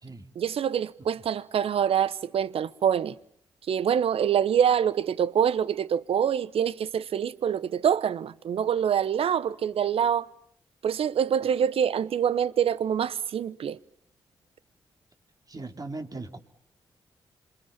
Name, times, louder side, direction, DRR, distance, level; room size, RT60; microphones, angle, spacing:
voice 1, 0.4-3.1 3.7-10.3 10.8-13.8, right 8 dB, 65° right, 1.1 m, -25 dB
voice 2, 15.5-16.4, right 3 dB, 35° right, 3.7 m, -38 dB
27.5 x 24.5 x 7.5 m
hypercardioid pair, 45°, 10 cm